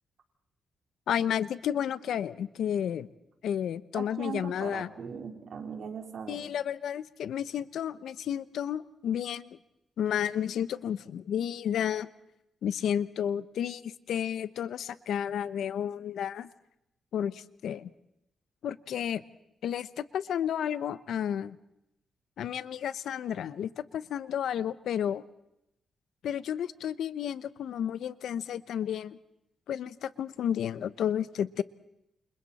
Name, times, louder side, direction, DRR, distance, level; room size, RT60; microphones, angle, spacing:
voice 1, 1.1-3.1 3.4-4.9 6.3-9.6 10.0-12.1 12.6-16.5 17.1-17.9 18.6-19.2 19.6-21.6 22.4-25.2 26.2-29.2 29.7-31.6, left 9 dB, 80° left, 16 dB, 0.9 m, -32 dB
voice 2, 3.9-6.4, right 6 dB, 60° right, 3 dB, 4.1 m, -39 dB
29.0 x 27.5 x 4.3 m, 0.84 s
cardioid pair, 110°, 0 cm